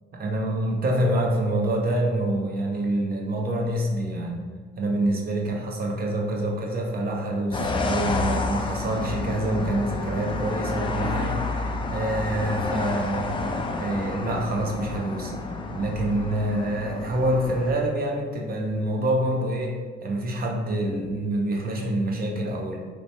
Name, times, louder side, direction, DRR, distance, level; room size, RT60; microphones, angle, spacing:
voice 1, 0.1-15.4 15.7-22.8, right 1 dB, 50° right, 0 dB, 0.7 m, -26 dB
sound 1, 7.5-17.7, left 3 dB, 25° left, 0.4 m, -30 dB
3.2 x 3.0 x 2.8 m, 1.5 s
cardioid pair, 90°, 20 cm